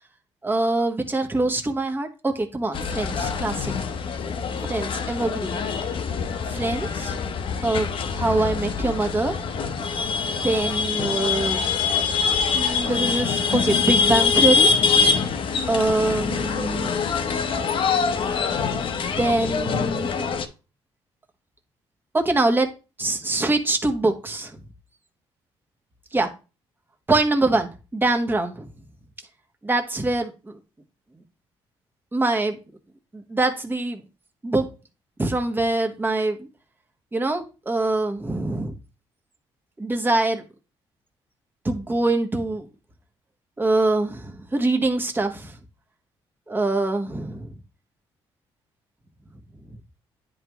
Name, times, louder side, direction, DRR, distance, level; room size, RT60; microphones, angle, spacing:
voice 1, 0.4-3.7 4.6-5.6 6.5-7.2 7.6-7.9 8.1-9.3 10.3-11.6 12.5-14.7 15.7-17.0 19.2-20.2 22.1-22.7 23.0-24.6 26.1-26.3 27.1-28.7 29.6-30.6 32.1-32.6 33.1-34.0 34.4-34.7 35.2-36.5 37.1-38.7 39.8-40.4 41.6-42.7 43.6-45.5 46.5-47.5, right 2 dB, 20° right, 1.3 m, -24 dB
sound 1, 2.7-20.5, left 5 dB, 60° left, 0.8 m, -24 dB
9.9 x 3.5 x 3.0 m
cardioid pair, 90°, 10 cm